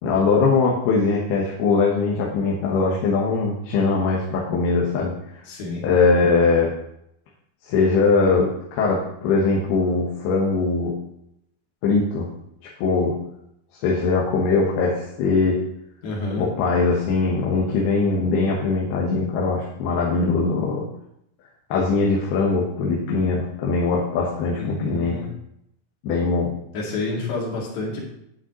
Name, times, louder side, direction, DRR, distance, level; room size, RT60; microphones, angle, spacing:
voice 1, 0.0-5.1 5.8-6.7 7.7-10.9 11.8-12.3 12.8-13.1 13.8-15.6 16.4-20.9 21.7-25.2 26.0-26.5, left 4 dB, 85° left, -3 dB, 3.2 m, -21 dB
voice 2, 5.5-5.9 16.0-16.5 24.6-25.3 26.7-28.0, left 2 dB, 60° left, -3 dB, 3.7 m, -29 dB
10.5 x 8.8 x 3.0 m, 0.76 s
omnidirectional pair, 4.4 m